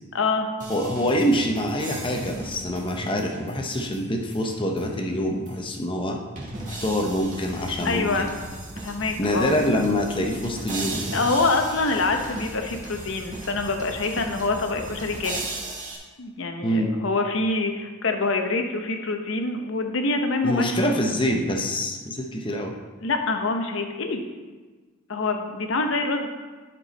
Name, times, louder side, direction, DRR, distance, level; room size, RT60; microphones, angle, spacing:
voice 1, 0.1-0.5 7.8-8.3 8.8-9.5 11.1-15.5 16.2-20.6 23.0-24.2 25.1-26.3, left 3 dB, 65° left, 5 dB, 0.8 m, -25 dB
sound 1, 0.6-5.0 5.5-5.6 6.4-16.0, right 2 dB, 35° right, 1.8 m, -37 dB
voice 2, 0.7-6.2 6.7-8.3 9.2-11.1 16.6-16.9 20.4-22.7, equal, 25° left, 2 dB, 0.8 m, -25 dB
11.5 x 4.5 x 4.1 m, 1.3 s
head